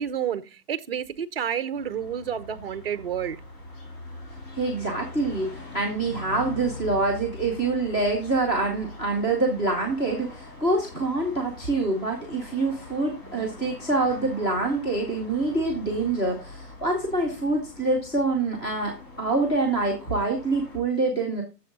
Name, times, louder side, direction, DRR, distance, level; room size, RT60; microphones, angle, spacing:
voice 1, 0.0-3.4, right 8 dB, 40° right, 0.5 m, -30 dB
sound 1, 1.7-20.8, left 3 dB, 40° left, 4.1 m, -43 dB
voice 2, 4.5-21.4, right 3 dB, 10° left, 0.8 m, -26 dB
8.3 x 7.0 x 3.9 m
hypercardioid pair, 155°, 48 cm